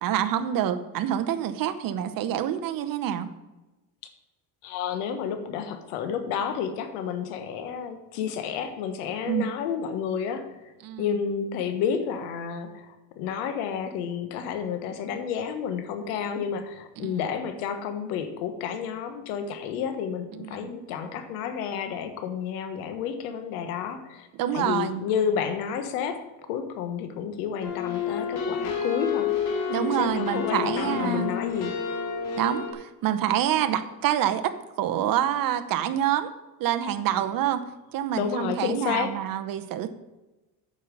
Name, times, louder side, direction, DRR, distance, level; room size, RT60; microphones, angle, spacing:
voice 1, 0.0-3.3 9.3-9.5 10.8-11.1 17.0-17.2 20.3-20.7 24.3-25.0 29.7-31.3 32.3-36.3 36.6-37.6 37.9-39.9, right 10 dB, 50° right, 9 dB, 0.9 m, -27 dB
voice 2, 4.6-10.7 11.0-24.3 24.5-26.2 26.5-29.3 29.8-31.7 38.2-39.1, left 7 dB, 85° left, 9 dB, 1.4 m, -30 dB
sound 1, 27.6-32.7, left 6 dB, 60° left, 2.4 m, -29 dB
8.7 x 5.6 x 6.6 m, 1.1 s
supercardioid pair, 110°, 44 cm